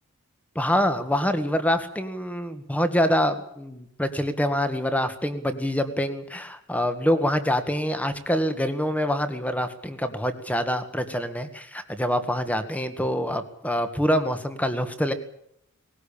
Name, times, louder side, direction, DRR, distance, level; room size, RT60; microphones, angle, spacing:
voice 1, 0.5-15.1, equal, 5° left, 9 dB, 1.8 m, -25 dB
19.5 x 19.0 x 8.7 m, 0.74 s
head